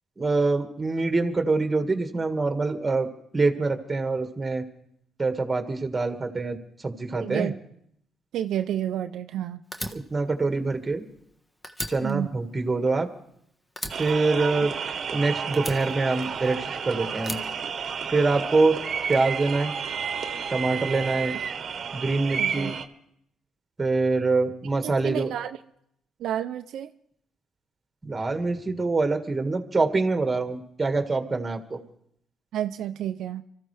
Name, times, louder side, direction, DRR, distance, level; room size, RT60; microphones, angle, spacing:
voice 1, 0.2-3.1 3.3-4.6 5.2-7.5 9.9-11.0 11.9-13.1 14.0-14.7 15.1-17.4 18.1-18.8 19.1-19.7 20.5-21.3 21.9-22.8 23.8-25.3 28.0-31.8, right 3 dB, 20° right, 5 dB, 1.9 m, -25 dB
voice 2, 7.1-7.6 8.3-9.6 12.0-12.3 22.4-22.7 24.8-25.6 26.2-26.9 32.5-33.4, right 11 dB, 80° right, 8 dB, 0.5 m, -30 dB
Fire, 9.7-11.3 11.6-13.4 13.8-15.1 15.5-16.7 17.2-18.4, equal, 15° left, 1.3 m, -38 dB
sound 1, 13.9-22.8, right 6 dB, 55° right, 1.1 m, -31 dB
24.5 x 14.5 x 3.4 m, 0.72 s
cardioid pair, 90°, 0 cm